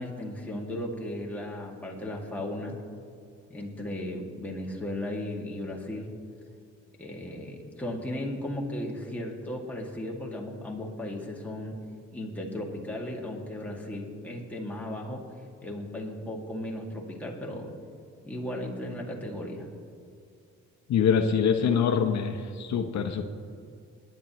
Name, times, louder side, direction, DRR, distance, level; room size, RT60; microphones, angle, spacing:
voice 1, 0.0-2.8 3.5-6.1 7.0-11.8 12.1-15.2 15.6-17.7 18.2-19.7, left 1 dB, 5° left, -2 dB, 2.1 m, -36 dB
voice 2, 20.9-23.3, left 7 dB, 65° left, 7 dB, 0.8 m, -24 dB
20.0 x 10.0 x 3.0 m, 2.4 s
cardioid pair, 90°, 30 cm